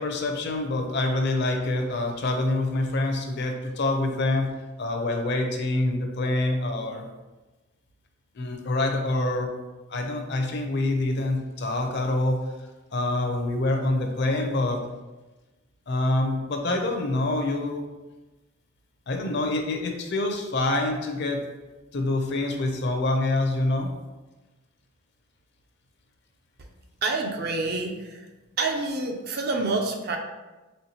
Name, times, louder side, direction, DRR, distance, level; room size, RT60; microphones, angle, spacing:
voice 1, 0.0-4.5 4.8-7.1 8.3-9.5 9.9-12.4 12.9-14.8 15.9-17.8 19.1-21.4 21.9-23.9, left 2 dB, 50° left, 3 dB, 0.5 m, -26 dB
voice 2, 27.0-28.3 28.6-30.2, right 3 dB, 45° right, 3 dB, 0.5 m, -27 dB
4.3 x 3.3 x 2.8 m, 1.1 s
head